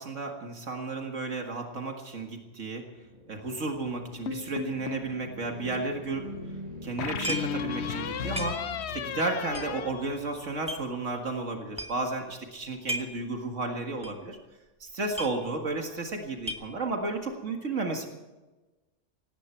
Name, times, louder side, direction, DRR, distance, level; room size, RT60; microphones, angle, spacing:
voice 1, 0.0-2.8 3.3-6.3 6.8-8.7 8.9-14.4 14.8-18.1, right 3 dB, 80° right, 3 dB, 2.2 m, -33 dB
sound 1, 2.5-11.4, right 1 dB, 30° right, 6.5 m, -44 dB
sound 2, 4.3-5.1 7.0-10.8, left 7 dB, 65° left, 0.9 m, -34 dB
sound 3, 7.2-7.7 7.9-8.0 8.4-8.9 9.5-10.8 11.4-11.5 11.7-12.1 12.6-13.3 13.6-13.7 14.0-14.3 14.5-14.6 14.9-15.8 16.1-17.0, equal, 5° right, 1.3 m, -36 dB
18.5 x 17.5 x 4.5 m, 1.1 s
omnidirectional pair, 1.3 m